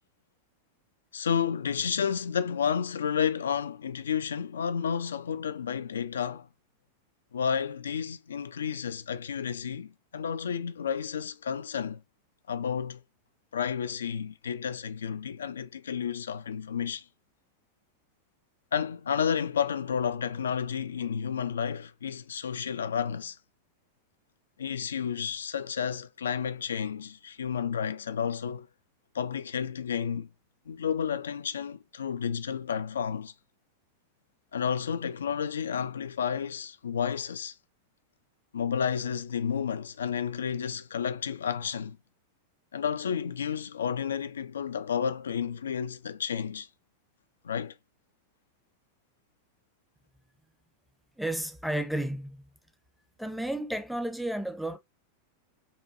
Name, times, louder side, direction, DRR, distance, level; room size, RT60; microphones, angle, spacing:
voice 1, 1.1-6.5 7.3-12.0 12.5-13.0 13.5-17.0 18.7-23.4 24.6-28.7 29.1-30.3 30.7-33.3 34.5-37.5 38.5-42.0 42.7-46.7 47.4-47.7, left 7 dB, 65° left, 0.3 m, -31 dB
voice 2, 51.2-52.5 53.2-54.8, right 1 dB, ahead, 0.6 m, -32 dB
5.4 x 2.2 x 2.5 m
figure-of-eight pair, 90°, 0 cm